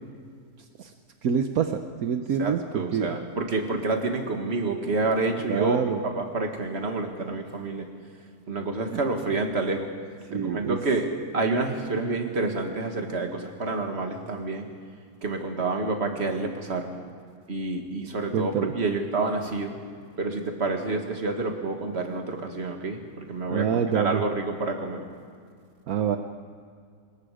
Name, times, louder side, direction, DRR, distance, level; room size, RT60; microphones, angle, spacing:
voice 1, 1.2-3.2 5.4-6.0 8.9-9.0 10.3-10.8 18.3-18.7 23.5-24.2 25.9-26.2, right 7 dB, 70° right, 6 dB, 1.3 m, -26 dB
voice 2, 2.4-5.8 6.0-7.9 8.5-9.9 10.3-11.0 11.3-14.7 15.2-16.9 17.5-19.7 20.2-23.7 23.9-25.0, right 3 dB, 45° right, 4 dB, 2.1 m, -28 dB
26.5 x 21.5 x 5.0 m, 2.2 s
omnidirectional pair, 1.6 m